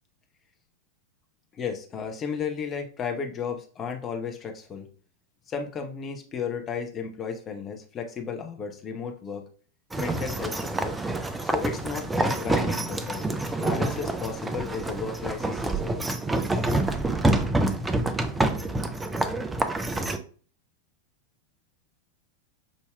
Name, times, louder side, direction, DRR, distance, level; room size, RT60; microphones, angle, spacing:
voice 1, 1.5-4.9 5.5-9.4 10.0-10.9 11.4-13.3 13.6-16.1, left 6 dB, 25° left, 3 dB, 0.8 m, -34 dB
sound 1, 9.9-20.2, right 2 dB, 10° right, 0.4 m, -27 dB
6.1 x 2.7 x 2.2 m, 0.41 s
figure-of-eight pair, 90°, 0 cm